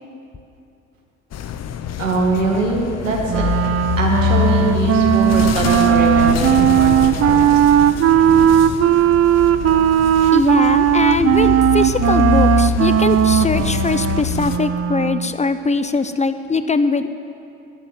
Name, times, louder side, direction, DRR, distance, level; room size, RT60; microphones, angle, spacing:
sound 1, 1.3-14.6, left 9 dB, 45° left, 1.0 m, -24 dB
voice 1, 2.0-3.4 3.9-7.4, right 3 dB, 85° right, -1 dB, 2.2 m, -22 dB
Wind instrument woodwind instrument, 3.3-15.3, right 10 dB, 40° right, 0.7 m, -16 dB
voice 2, 10.3-17.1, left 4 dB, 20° left, 11 dB, 0.8 m, -21 dB
13.0 x 10.5 x 9.2 m, 2.6 s
figure-of-eight pair, 55°, 37 cm